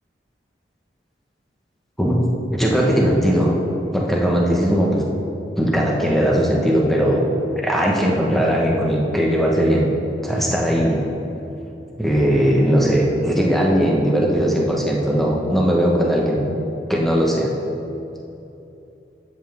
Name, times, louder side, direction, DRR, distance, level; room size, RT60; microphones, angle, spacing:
voice 1, 2.5-3.5 3.9-5.0 5.6-7.3 7.6-9.8 10.2-11.1 12.0-16.5 16.9-17.5, equal, ahead, -3 dB, 1.3 m, -19 dB
12.5 x 8.0 x 3.6 m, 2.9 s
head